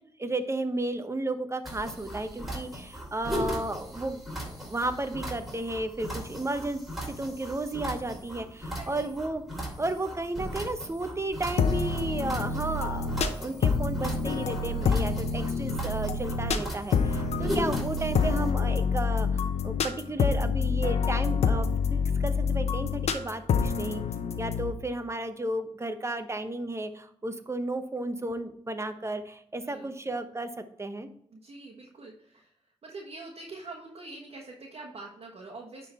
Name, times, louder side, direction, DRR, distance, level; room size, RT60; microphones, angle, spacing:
voice 1, 0.2-6.8 7.1-9.4 9.8-24.0 24.4-31.1, right 2 dB, 25° right, 9 dB, 0.9 m, -33 dB
sound 1, 1.6-18.5, equal, ahead, 3.1 m, -38 dB
voice 2, 8.6-9.1 9.5-9.8 29.6-29.9 31.3-35.9, right 3 dB, 65° right, -3 dB, 1.3 m, -45 dB
sound 2, 11.6-24.7, left 5 dB, 80° left, 0.7 m, -27 dB
9.8 x 3.8 x 4.3 m, 0.69 s
cardioid pair, 60°, 11 cm